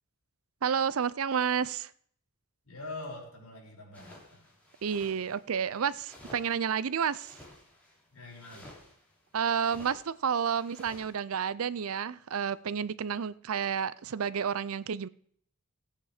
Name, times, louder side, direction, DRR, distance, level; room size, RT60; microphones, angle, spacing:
voice 1, 0.6-1.9 4.8-7.4 9.3-15.1, right 7 dB, 75° right, 19 dB, 0.5 m, -30 dB
voice 2, 2.6-4.5 8.1-8.7, left 2 dB, 70° left, -2 dB, 5.1 m, -44 dB
sound 1, 3.9-11.2, left 1 dB, 5° left, 3.2 m, -54 dB
16.0 x 8.7 x 5.0 m, 0.63 s
head